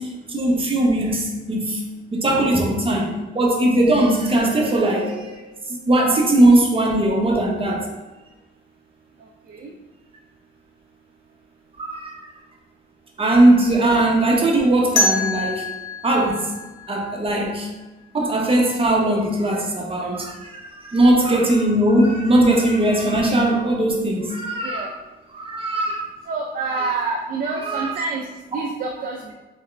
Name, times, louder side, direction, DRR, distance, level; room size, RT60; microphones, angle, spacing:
voice 1, 0.0-1.8 2.1-5.5 5.9-7.9 11.8-12.1 13.2-15.7 16.0-16.5 16.9-17.7 18.1-24.9 25.3-26.0 26.7-26.9 27.7-27.9, right 1 dB, 30° right, -1 dB, 0.9 m, -19 dB
voice 2, 9.2-9.7 20.0-20.2 24.6-24.9 26.2-29.3, right 4 dB, 45° right, 0 dB, 0.5 m, -28 dB
sound 1, 15.0-17.8, left 2 dB, 75° left, 0.7 m, -26 dB
3.6 x 3.3 x 3.2 m, 1.1 s
cardioid pair, 90°, 20 cm